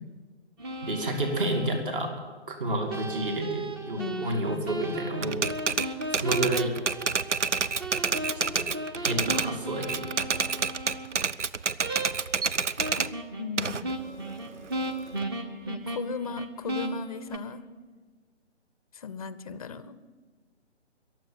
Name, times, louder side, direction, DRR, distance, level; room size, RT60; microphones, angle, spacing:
sound 1, 0.6-1.8 2.9-11.1 11.8-12.4 12.8-17.4, right 1 dB, 20° right, 0.8 m, -36 dB
voice 1, 0.8-2.1 2.5-5.4 5.8-6.7 8.5-8.6 9.0-10.1, right 1 dB, 50° right, 4 dB, 2.5 m, -30 dB
voice 2, 4.0-4.4 13.4-13.9 15.7-17.6 18.9-20.0, left 5 dB, 30° left, 15 dB, 0.5 m, -36 dB
Typewriter, 5.2-9.5 9.8-13.1 13.6-15.2, right 5 dB, 90° right, 0.6 m, -28 dB
22.0 x 7.6 x 7.7 m, 1.5 s
figure-of-eight pair, 135°, 35 cm